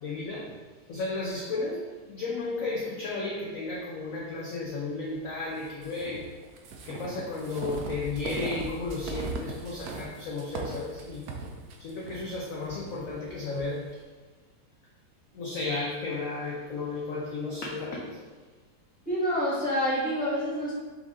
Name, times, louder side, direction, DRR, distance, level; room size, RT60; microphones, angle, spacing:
voice 1, 0.0-0.5 0.9-6.3 6.9-11.2 11.8-13.8 15.3-18.3, left 3 dB, 70° left, -3 dB, 0.8 m, -33 dB
sound 1, 5.8-13.7, right 3 dB, 70° right, 1.0 m, -39 dB
voice 2, 19.0-20.8, equal, 5° right, -8 dB, 1.0 m, -27 dB
4.7 x 2.6 x 3.6 m, 1.3 s
omnidirectional pair, 2.0 m